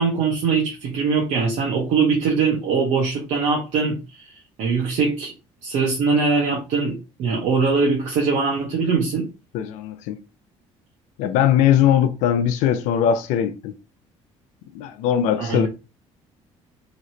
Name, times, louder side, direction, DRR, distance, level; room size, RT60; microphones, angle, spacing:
voice 1, 0.0-5.3 5.6-9.3 15.4-15.7, right 5 dB, 70° right, 1.0 m, -22 dB
voice 2, 9.5-10.2 11.2-13.7 14.7-15.7, left 9 dB, 85° left, 0.5 m, -20 dB
3.1 x 2.9 x 2.8 m
cardioid pair, 95°, 12 cm